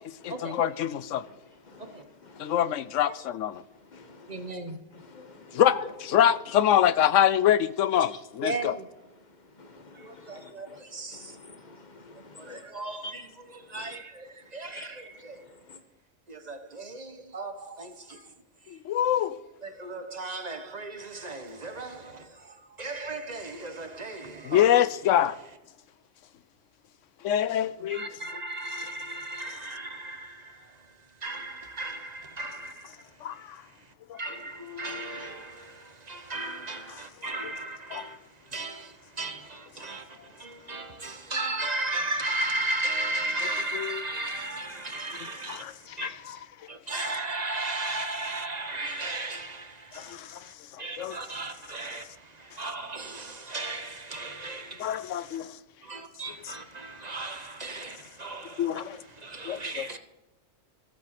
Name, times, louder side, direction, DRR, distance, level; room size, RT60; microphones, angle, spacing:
voice 1, 0.2-1.2 2.4-3.6 5.5-8.8 12.5-12.6 18.7-19.4 24.4-25.4 27.2-28.1 33.2-33.6 34.1-34.2 37.9-38.1 43.7-44.0 45.2-46.4 50.0-50.5 51.0-51.2 54.8-55.5 56.4-56.5 58.6-59.0 59.4-59.9, left 11 dB, 75° left, 1.0 m, -25 dB
voice 2, 1.7-2.7 3.9-4.6 4.9-5.8 6.2-6.4 8.1-8.2 9.6-10.8 11.1-12.7 13.0-13.1 13.7-13.9 14.7-14.9 15.7-15.8, left 5 dB, 35° left, 1.4 m, -41 dB
voice 3, 4.3-4.8 8.4-8.9 9.9-11.3 12.4-15.4 16.3-18.2 19.6-24.8 27.9-30.8 31.2-32.9 33.3-33.4 34.2-38.2 38.4-46.4 46.7-50.5 50.8-55.4 55.8-58.8 59.1-60.0, right 2 dB, 35° right, 1.2 m, -36 dB
14.0 x 8.1 x 5.9 m
omnidirectional pair, 1.3 m